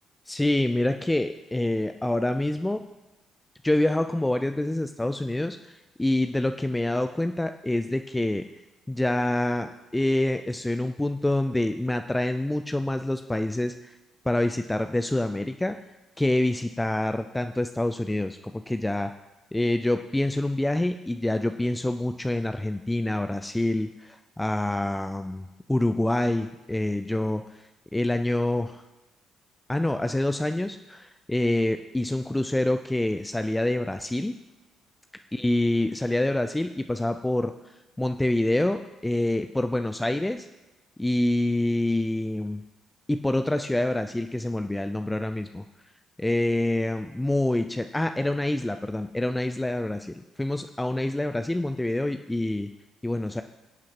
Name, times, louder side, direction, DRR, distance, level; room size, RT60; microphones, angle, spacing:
voice 1, 0.3-2.9 3.6-8.5 8.9-13.9 14.3-15.8 16.2-19.1 19.5-27.6 27.9-28.8 29.7-34.4 35.3-37.5 38.0-40.5 41.0-42.7 43.1-45.7 46.2-52.7 53.0-53.4, left 1 dB, 10° left, 8 dB, 0.5 m, -26 dB
20.5 x 8.6 x 3.0 m, 1.1 s
figure-of-eight pair, 45°, 0 cm